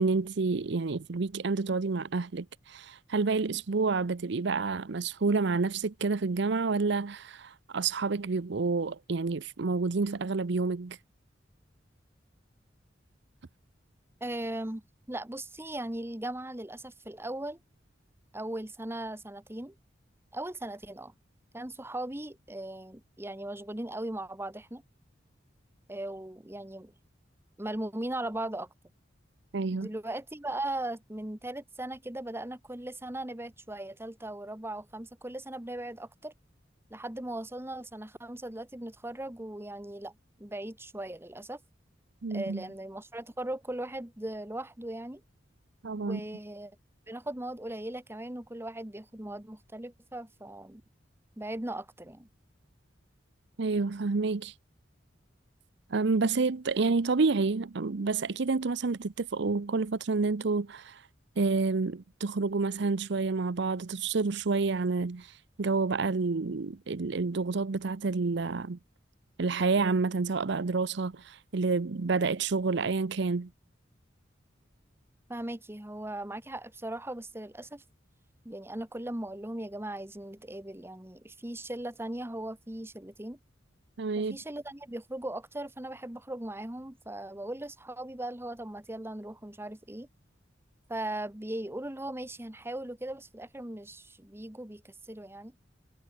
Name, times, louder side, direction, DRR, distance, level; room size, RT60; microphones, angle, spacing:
voice 1, 0.0-11.0 29.5-29.9 42.2-42.6 45.8-46.2 53.6-54.5 55.9-61.0 61.4-68.8 69.4-73.5 84.0-84.4, right 4 dB, 65° right, 0.7 m, -29 dB
voice 2, 14.2-14.8 15.1-17.6 18.3-19.7 20.3-21.1 21.5-24.8 25.9-26.9 27.6-28.7 29.7-36.3 36.9-40.1 40.4-41.6 42.3-45.2 46.0-46.8 47.1-50.8 51.4-52.3 75.3-77.8 78.4-83.4 84.2-90.1 90.9-95.5, right 1 dB, 15° right, 1.4 m, -38 dB
head